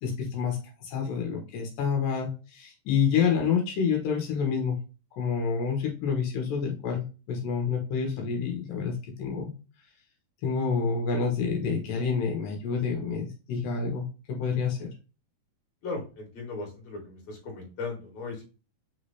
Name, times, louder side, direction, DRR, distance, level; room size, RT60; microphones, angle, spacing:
voice 1, 0.0-4.8 5.2-9.5 10.4-14.9, left 6 dB, 85° left, 1 dB, 2.8 m, -28 dB
voice 2, 15.8-18.4, left 3 dB, 55° left, 0 dB, 2.8 m, -37 dB
5.7 x 3.2 x 2.7 m, 0.33 s
omnidirectional pair, 4.0 m